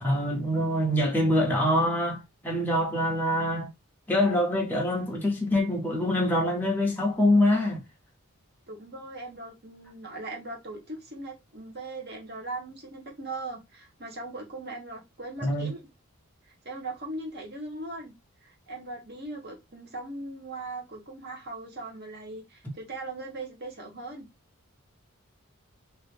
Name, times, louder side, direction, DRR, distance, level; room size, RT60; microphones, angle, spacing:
voice 1, 0.0-3.7 4.1-7.8 15.4-15.7, left 1 dB, 10° left, 0.6 m, -25 dB
voice 2, 8.7-15.8 16.6-18.1 18.4-24.3, right 2 dB, 50° right, 1.0 m, -39 dB
2.8 x 2.5 x 3.3 m
head